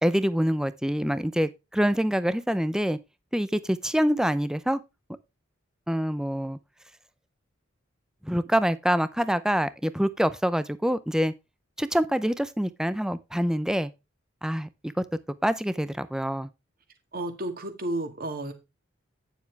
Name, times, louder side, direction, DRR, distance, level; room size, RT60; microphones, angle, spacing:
voice 1, 0.0-3.0 3.3-4.8 5.9-6.6 8.2-11.3 11.8-13.9 14.4-14.9 15.4-16.5, equal, 5° right, 0.5 m, -26 dB
voice 2, 17.1-18.5, right 1 dB, 50° right, 2.0 m, -32 dB
9.6 x 7.2 x 3.4 m
head